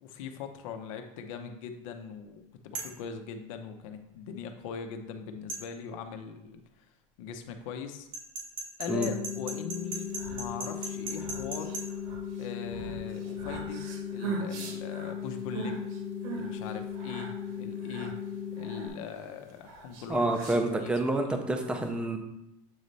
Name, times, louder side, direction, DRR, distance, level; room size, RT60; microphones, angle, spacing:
voice 1, 0.0-6.9 7.2-8.1 8.8-11.7 12.4-13.8 14.1-15.8 16.3-18.2 18.6-20.9 21.3-21.5, left 6 dB, 80° left, 6 dB, 0.8 m, -41 dB
sound 1, 2.7-3.0 5.5-5.6 8.1-11.9, right 3 dB, 80° right, 1.9 m, -37 dB
sound 2, 8.9-18.9, left 7 dB, 20° left, 1.1 m, -37 dB
sound 3, 9.9-21.1, right 2 dB, 60° right, 1.3 m, -41 dB
voice 2, 20.1-22.2, right 2 dB, 5° right, 5 dB, 0.5 m, -28 dB
7.9 x 3.3 x 4.0 m, 0.84 s
cardioid pair, 160°, 17 cm